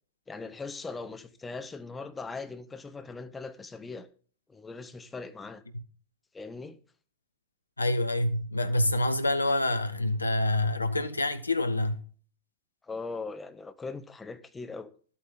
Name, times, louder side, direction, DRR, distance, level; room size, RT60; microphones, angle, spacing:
voice 1, 0.3-4.1 4.5-5.6 6.3-6.8 12.8-14.9, left 4 dB, 15° left, 1.0 m, -40 dB
voice 2, 7.8-12.0, left 1 dB, 80° left, 0.8 m, -27 dB
12.0 x 8.4 x 3.7 m
figure-of-eight pair, 90°, 0 cm